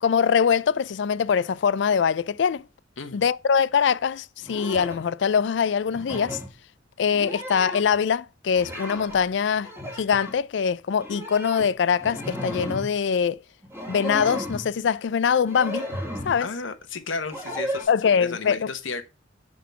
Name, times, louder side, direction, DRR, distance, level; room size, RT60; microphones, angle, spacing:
voice 1, 0.0-2.6 3.1-6.4 7.0-9.7 10.0-13.4 13.9-15.9 16.2-16.5 17.9-18.6, left 7 dB, 65° left, 0.4 m, -23 dB
sound 1, 4.4-5.1 5.9-6.5 7.0-8.0 8.5-9.2 9.5-10.4 11.0-13.0 13.6-14.7 15.5-16.4 17.3-17.8, equal, 15° right, 1.9 m, -34 dB
voice 2, 16.4-19.0, left 4 dB, 85° left, 1.1 m, -33 dB
7.3 x 3.9 x 5.6 m
head